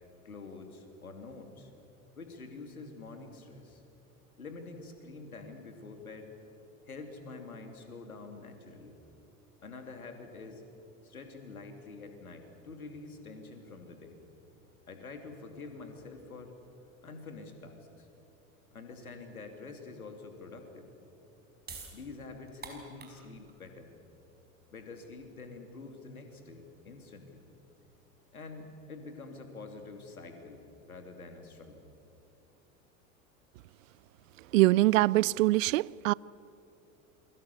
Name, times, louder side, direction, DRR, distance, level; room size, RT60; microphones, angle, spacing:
voice 1, 0.2-1.7 2.2-3.8 4.4-6.3 6.9-9.0 9.6-10.6 11.0-14.2 14.9-16.5 17.0-18.1 18.7-20.9 21.9-23.9 24.7-27.4 28.3-31.9, left 3 dB, 85° left, 3.0 m, -47 dB
sound 1, 21.6-28.0, right 4 dB, 25° right, 5.4 m, -51 dB
voice 2, 34.5-36.1, right 18 dB, 70° right, 0.5 m, -23 dB
28.5 x 23.0 x 7.0 m
figure-of-eight pair, 75°, 42 cm